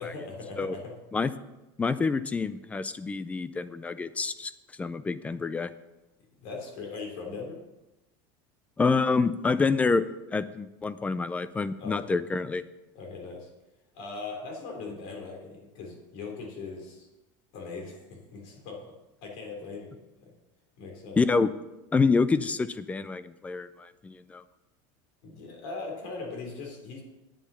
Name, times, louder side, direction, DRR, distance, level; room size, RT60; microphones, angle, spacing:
voice 1, 0.0-0.9 6.4-7.6 11.8-12.2 12.9-13.5 13.9-17.1 17.5-18.9 19.2-20.3 20.8-21.2 25.2-27.0, left 4 dB, 60° left, 1 dB, 3.4 m, -40 dB
voice 2, 1.8-4.5 4.8-5.7 8.8-10.0 10.3-12.6 21.2-21.5 21.9-24.4, left 4 dB, 10° left, 15 dB, 0.4 m, -27 dB
9.4 x 7.3 x 6.9 m, 1.0 s
supercardioid pair, 155°, 12 cm